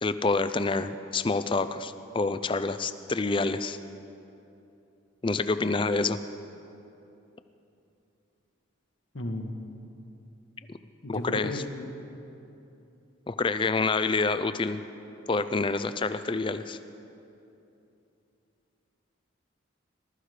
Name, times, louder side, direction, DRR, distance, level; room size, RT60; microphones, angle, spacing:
voice 1, 0.0-3.8 5.2-6.2 10.7-10.8 11.1-11.6 13.3-14.8 15.3-16.8, left 3 dB, 25° left, 12 dB, 0.4 m, -27 dB
voice 2, 9.1-9.6 11.0-11.7, left 1 dB, 70° left, 4 dB, 1.4 m, -34 dB
19.5 x 13.5 x 4.9 m, 2.8 s
head